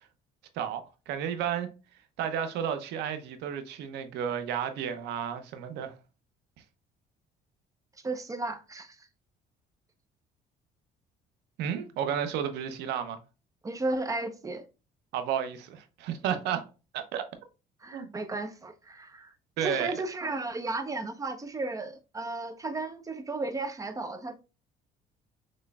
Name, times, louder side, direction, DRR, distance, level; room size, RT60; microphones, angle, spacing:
voice 1, 0.5-1.7 2.2-5.9 11.6-13.2 15.1-16.6 16.9-17.3 17.9-18.1 19.6-19.9, right 8 dB, 85° right, 0.9 m, -32 dB
voice 2, 8.0-9.1 13.6-14.6 17.8-19.3 19.6-24.5, right 2 dB, 20° right, 0.8 m, -34 dB
6.3 x 3.2 x 2.3 m
cardioid pair, 110°, 17 cm